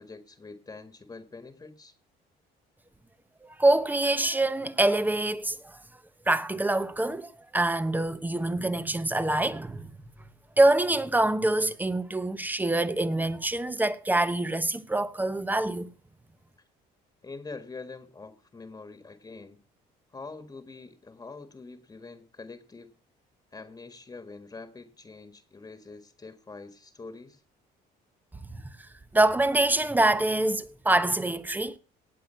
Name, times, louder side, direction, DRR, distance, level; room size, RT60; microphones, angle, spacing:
voice 1, 0.0-1.9 17.2-19.6 20.1-22.9 23.5-27.4, left 3 dB, 20° left, 1.7 m, -45 dB
voice 2, 3.4-5.8 6.3-9.9 10.6-15.9 28.5-31.8, right 2 dB, 10° right, 0.9 m, -25 dB
18.0 x 7.5 x 5.7 m
cardioid pair, 110°, 17 cm